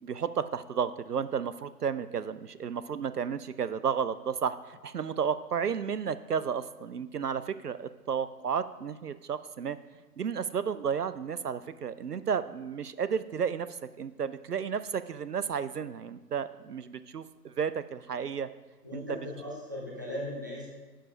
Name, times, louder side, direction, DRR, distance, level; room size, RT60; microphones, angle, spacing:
voice 1, 0.0-9.8 10.2-18.5 18.9-19.0, right 7 dB, 70° right, 14 dB, 0.6 m, -32 dB
voice 2, 18.8-20.7, left 1 dB, 10° right, -4 dB, 0.7 m, -38 dB
11.5 x 5.1 x 5.1 m, 1.3 s
figure-of-eight pair, 145°, 49 cm